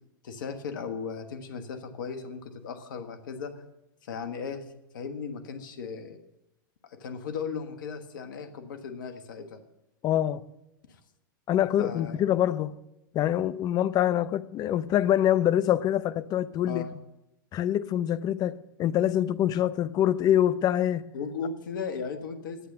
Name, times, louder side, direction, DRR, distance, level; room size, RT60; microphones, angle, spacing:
voice 1, 0.2-3.6 4.0-4.6 4.9-6.2 6.8-9.6 10.9-11.0 11.8-12.2 16.7-16.9 21.1-22.6, left 5 dB, 70° left, 1.4 m, -36 dB
voice 2, 10.0-10.4 11.5-12.8 13.1-16.8 17.5-21.1, left 11 dB, 35° left, 0.6 m, -25 dB
11.0 x 8.3 x 6.6 m
hypercardioid pair, 95°, 11 cm